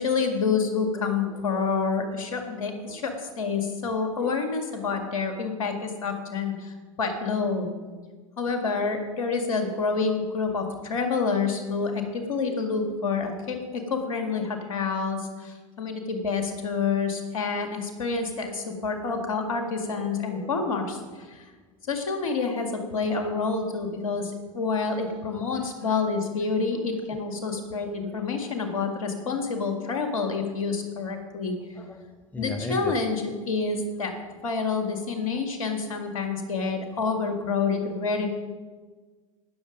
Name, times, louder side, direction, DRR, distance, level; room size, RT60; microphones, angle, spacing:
voice 1, 0.0-7.7 8.4-21.5 21.9-31.6 32.4-34.1 34.4-38.3, left 4 dB, 75° left, 4 dB, 2.0 m, -28 dB
voice 2, 1.0-1.7 2.6-3.0 20.3-20.5 27.5-28.5 31.8-33.0 37.0-37.1, left 2 dB, 10° left, 6 dB, 0.8 m, -40 dB
18.0 x 6.9 x 5.2 m, 1.4 s
hypercardioid pair, 85°, 18 cm